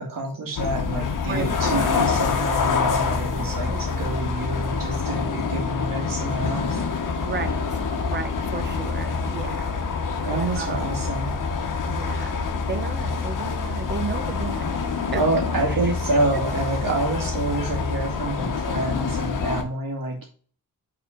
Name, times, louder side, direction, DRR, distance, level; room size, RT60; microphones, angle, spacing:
voice 1, 0.0-6.8 10.2-11.3 15.1-20.3, right 2 dB, 70° right, 1 dB, 2.3 m, -27 dB
sound 1, 0.6-19.6, left 5 dB, 65° left, 1.1 m, -26 dB
voice 2, 1.3-2.0 3.1-3.9 7.1-9.7 10.3-10.9 11.9-12.4 12.7-14.7 15.1-15.2 15.7-15.9, right 5 dB, 30° right, 9 dB, 0.8 m, -34 dB
5.7 x 4.2 x 4.9 m, 0.43 s
wide cardioid pair, 165°, 34 cm